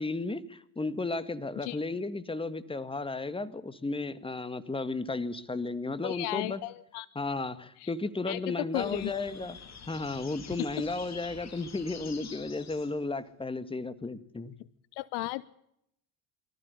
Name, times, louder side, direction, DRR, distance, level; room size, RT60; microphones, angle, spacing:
voice 1, 0.0-6.6 7.2-9.6 9.9-14.5, left 3 dB, 10° left, 14 dB, 1.8 m, -34 dB
voice 2, 6.0-7.1 7.8-7.9 8.3-9.1 14.9-15.5, left 20 dB, 65° left, 20 dB, 0.9 m, -34 dB
sound 1, 8.7-13.1, left 6 dB, 35° left, 3.3 m, -47 dB
24.0 x 14.5 x 8.3 m, 0.75 s
hypercardioid pair, 80°, 44 cm